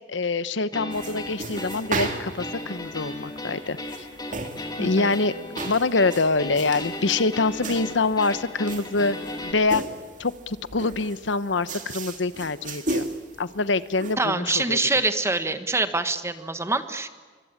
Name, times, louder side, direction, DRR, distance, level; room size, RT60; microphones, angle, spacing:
voice 1, 0.1-3.8 4.8-5.3 5.6-9.2 9.4-9.8 10.2-13.1 13.4-14.8, left 3 dB, 80° left, 15 dB, 1.0 m, -25 dB
sound 1, 0.7-9.5, left 1 dB, 20° left, 2.9 m, -36 dB
sound 2, 0.9-14.1, right 2 dB, 45° right, 2.5 m, -36 dB
voice 2, 4.8-5.1 14.2-17.1, right 3 dB, 15° right, 10 dB, 1.4 m, -25 dB
26.5 x 24.5 x 8.8 m, 1.5 s
head